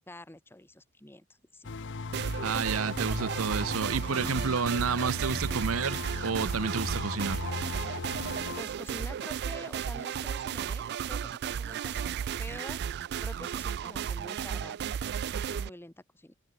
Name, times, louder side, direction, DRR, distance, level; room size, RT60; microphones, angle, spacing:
voice 1, 0.1-1.3 1.5-1.7 8.5-12.8 13.2-14.9 15.3-16.3, left 1 dB, 10° left, 1.2 m, -47 dB
sound 1, 1.6-8.6, left 3 dB, 60° left, 0.8 m, -37 dB
sound 2, 2.1-15.7, right 8 dB, 50° right, 0.3 m, -34 dB
voice 2, 2.4-7.4, right 5 dB, 75° right, 0.7 m, -30 dB
head